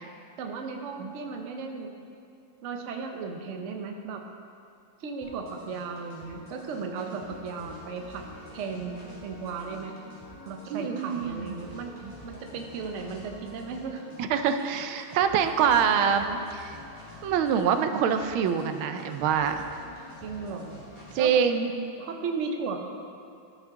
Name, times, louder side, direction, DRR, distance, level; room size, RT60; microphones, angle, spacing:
voice 1, 0.4-1.9 2.6-4.2 5.0-8.2 8.5-10.0 10.5-11.9 12.2-14.0 14.6-14.7 16.0-16.4 20.2-20.7 21.2-21.3 22.0-22.8, right 4 dB, 60° right, 3 dB, 0.8 m, -36 dB
sound 1, 5.2-21.2, left 2 dB, 15° left, 2.0 m, -47 dB
voice 2, 10.7-11.5 12.0-12.1 14.3-16.2 16.5-16.8 17.2-19.8 21.1-21.7, right 7 dB, 85° right, 8 dB, 1.4 m, -25 dB
13.5 x 5.8 x 3.6 m, 2.4 s
omnidirectional pair, 2.2 m